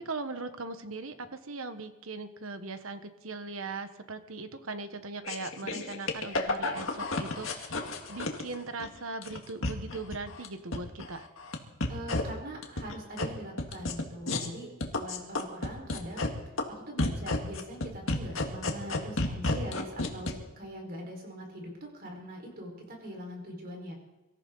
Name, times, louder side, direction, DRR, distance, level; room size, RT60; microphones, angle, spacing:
voice 1, 0.0-11.3, right 3 dB, 65° right, 9 dB, 1.3 m, -39 dB
sound 1, 5.2-8.9 9.2-10.5 10.7-11.6 11.8-12.2 12.6-13.2 13.6-14.5 14.8-16.3 16.6-16.7 17.0-20.3, left 2 dB, 65° left, 1.9 m, -31 dB
voice 2, 11.9-16.3 16.7-23.9, equal, 45° right, 0 dB, 5.0 m, -42 dB
24.0 x 14.5 x 4.1 m, 1.1 s
head